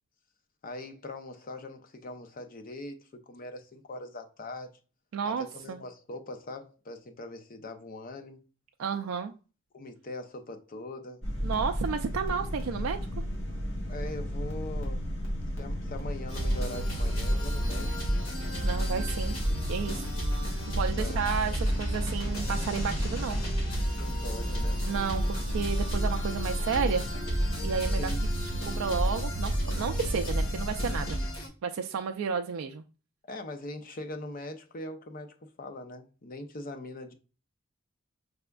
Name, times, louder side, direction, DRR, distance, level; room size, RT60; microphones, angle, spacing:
voice 1, 0.6-4.7 5.2-8.5 9.7-11.2 13.9-15.1 15.6-18.0 20.9-21.2 23.9-24.9 27.8-28.2 33.3-37.1, left 2 dB, 45° left, 0.6 m, -41 dB
voice 2, 5.1-5.8 8.8-9.3 11.4-13.0 18.6-19.4 19.7-20.1 20.4-23.4 24.9-27.0 27.6-28.1 28.7-31.2 31.6-32.8, right 6 dB, 75° right, 0.4 m, -32 dB
sound 1, 11.2-31.1, equal, 70° left, 1.6 m, -33 dB
sound 2, 16.3-31.5, right 1 dB, 90° left, 2.1 m, -32 dB
4.9 x 3.4 x 2.2 m
head